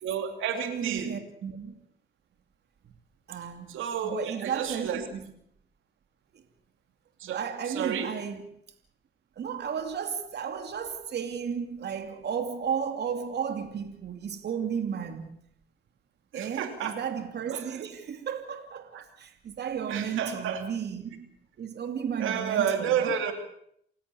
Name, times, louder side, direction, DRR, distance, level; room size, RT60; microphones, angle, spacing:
voice 1, 0.0-1.1 3.7-5.0 7.2-7.4 7.7-8.1 16.3-17.0 17.5-17.8 18.9-19.0 19.9-20.6 22.2-23.3, right 8 dB, 85° right, 2.9 m, -30 dB
voice 2, 0.5-1.8 3.3-3.7 4.0-5.3 6.3-6.4 7.2-8.5 9.4-15.4 16.3-21.3 21.6-23.1, right 7 dB, 55° right, 2.7 m, -34 dB
28.5 x 16.0 x 7.0 m
cardioid pair, 90°, 20 cm